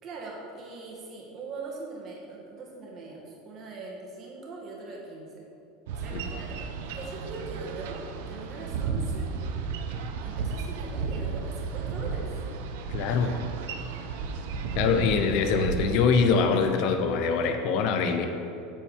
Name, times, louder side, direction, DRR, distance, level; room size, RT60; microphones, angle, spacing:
voice 1, 0.0-5.5 5.9-9.3 10.2-12.3, right 3 dB, 40° right, -2 dB, 2.1 m, -41 dB
Boat Water vehicle, 5.9-16.1, right 5 dB, 80° right, 0.8 m, -33 dB
voice 2, 12.9-13.4 14.8-18.3, left 5 dB, 60° left, 7 dB, 0.8 m, -24 dB
8.9 x 4.5 x 7.3 m, 2.7 s
supercardioid pair, 135°, 0 cm